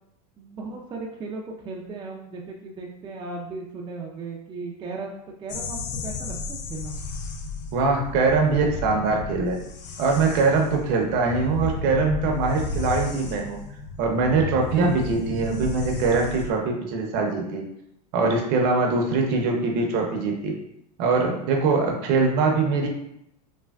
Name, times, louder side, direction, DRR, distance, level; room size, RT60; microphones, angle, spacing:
voice 1, 0.4-7.0, right 3 dB, 20° right, -1 dB, 0.4 m, -36 dB
sound 1, 5.5-16.5, left 4 dB, 85° left, 0.4 m, -33 dB
voice 2, 7.7-9.6 10.0-13.6 14.0-17.6 18.1-20.5 21.0-22.9, right 4 dB, 55° right, 2 dB, 0.7 m, -22 dB
3.3 x 2.2 x 2.3 m, 0.77 s
hypercardioid pair, 100°, 21 cm